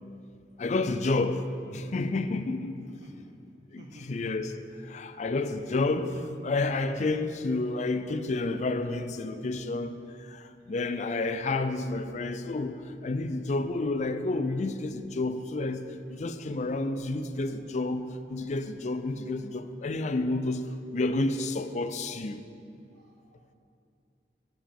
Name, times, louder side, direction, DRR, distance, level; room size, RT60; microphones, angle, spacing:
voice 1, 0.6-2.7 3.7-3.8 4.1-4.5 4.8-15.8 16.1-22.4, left 2 dB, 40° left, 0.5 m, -30 dB
voice 2, 2.8-3.3 3.7-4.2 9.3-9.4 10.7-11.2 12.7-12.8 17.4-17.9 19.4-19.6 22.9-23.5, right 1 dB, 75° right, 1.5 m, -54 dB
16.5 x 7.0 x 3.6 m
head